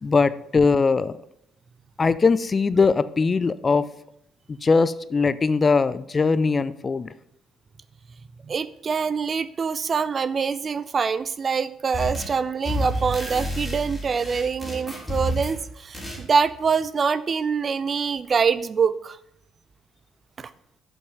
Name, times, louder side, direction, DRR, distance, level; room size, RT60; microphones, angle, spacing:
voice 1, 0.0-1.2 2.0-3.8 4.5-7.1, left 4 dB, 30° left, 15 dB, 0.4 m, -20 dB
voice 2, 8.5-19.2 20.4-20.5, right 5 dB, 40° right, 16 dB, 0.4 m, -25 dB
sound 1, 11.9-12.4 12.6-15.6 15.9-16.2, equal, ahead, 3.3 m, -30 dB
7.4 x 5.4 x 5.5 m, 0.75 s
figure-of-eight pair, 50°, 0 cm